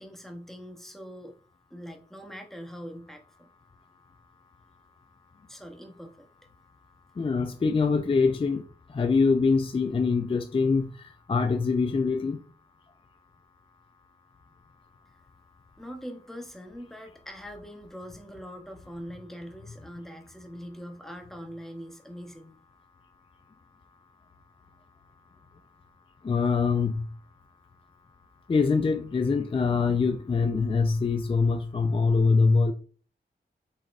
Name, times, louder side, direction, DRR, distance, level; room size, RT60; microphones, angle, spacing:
voice 1, 0.0-1.4 1.7-3.5 5.5-6.3 15.8-22.5, equal, ahead, 0.8 m, -42 dB
voice 2, 7.2-12.4 26.2-27.0 28.5-32.7, left 4 dB, 30° left, 0.4 m, -24 dB
4.0 x 3.5 x 2.4 m
cardioid pair, 60°, 19 cm